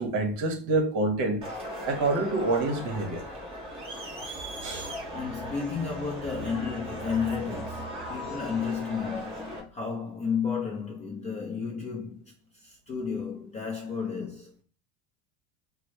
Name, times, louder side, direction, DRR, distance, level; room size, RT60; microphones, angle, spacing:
voice 1, 0.0-1.4 1.8-3.2 4.6-4.9, right 2 dB, 50° right, 1.0 m, -27 dB
Crowd, 1.4-9.6, equal, 15° right, 1.5 m, -38 dB
voice 2, 5.1-12.2 12.5-14.6, left 6 dB, 15° left, 0.4 m, -32 dB
4.8 x 2.1 x 4.4 m
cardioid pair, 165°, 40 cm